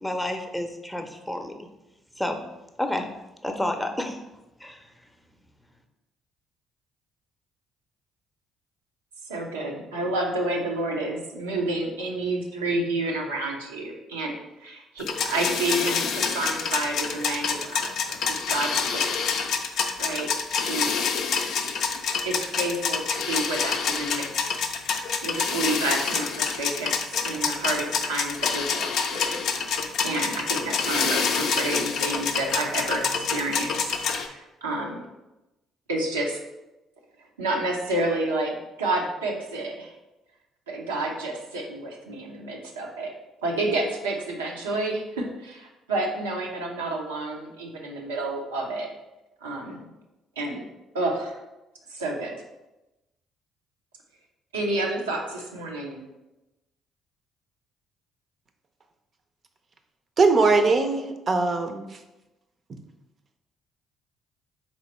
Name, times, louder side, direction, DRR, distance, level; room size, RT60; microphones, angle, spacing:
voice 1, 0.0-1.5 2.2-2.4 2.8-3.1 3.4-4.2 4.6-4.9, left 1 dB, 5° left, 4 dB, 0.6 m, -30 dB
voice 2, 9.3-18.0 18.3-19.3 19.6-21.0 22.2-24.3 24.6-24.7 25.2-27.0 27.2-29.4 30.0-33.9 34.2-35.1 35.9-36.4 37.4-39.9 40.7-43.1 43.4-48.9 49.4-49.9 50.4-50.6 50.9-51.4 51.9-52.4 54.5-56.0, right 2 dB, 85° right, -1 dB, 0.6 m, -29 dB
sound 1, 15.0-34.3, left 6 dB, 60° left, 0.4 m, -27 dB
voice 3, 60.2-61.8, right 3 dB, 45° right, 7 dB, 0.6 m, -20 dB
4.0 x 3.0 x 4.2 m, 1.0 s
hypercardioid pair, 50°, 0 cm